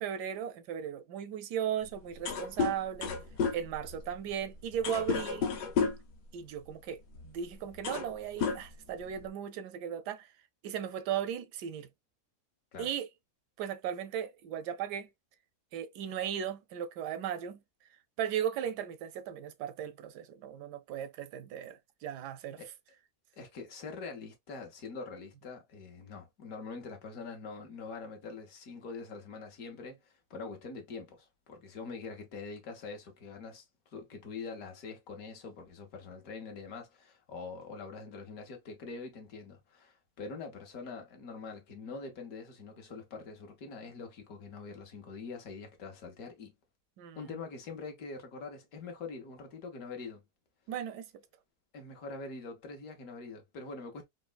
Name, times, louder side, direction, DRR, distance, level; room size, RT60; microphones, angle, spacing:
voice 1, 0.0-3.2 3.5-5.5 6.3-10.3 10.6-11.9 12.8-13.1 13.6-15.1 15.7-17.6 18.2-22.6 47.0-47.3 50.7-51.1, right 9 dB, 90° right, 1.2 m, -36 dB
sound 1, 1.8-1.9 2.1-6.1 7.1-7.3 7.7-8.1 8.4-9.3, left 6 dB, 85° left, 1.4 m, -32 dB
voice 2, 23.4-33.6 33.9-46.5 47.1-50.2 51.7-54.1, left 4 dB, 65° left, 1.3 m, -44 dB
4.1 x 2.1 x 2.2 m
omnidirectional pair, 1.7 m